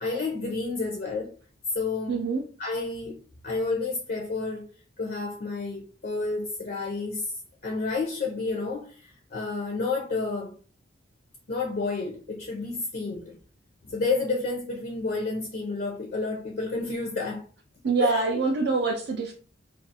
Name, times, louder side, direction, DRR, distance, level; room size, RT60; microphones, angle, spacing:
voice 1, 0.0-1.3 1.7-2.2 2.6-3.2 3.4-4.7 5.0-7.3 7.6-10.6 11.5-13.3 13.8-17.4 18.0-18.3, left 3 dB, 45° left, 0.4 m, -30 dB
voice 2, 2.1-2.4 17.8-19.3, right 4 dB, 55° right, 0.3 m, -25 dB
2.4 x 2.3 x 2.7 m
head